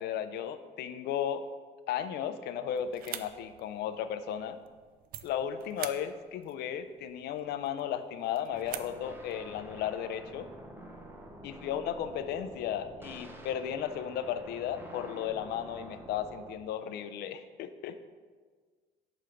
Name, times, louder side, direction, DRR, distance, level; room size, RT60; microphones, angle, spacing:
voice 1, 0.0-1.4 1.9-4.6 5.2-10.5 11.4-18.1, left 9 dB, 75° left, 11 dB, 0.5 m, -35 dB
sound 1, 2.7-9.4, right 11 dB, 60° right, 0.4 m, -47 dB
sound 2, 8.5-16.5, right 1 dB, 10° right, 0.7 m, -48 dB
6.8 x 3.2 x 5.0 m, 1.5 s
cardioid pair, 110°, 17 cm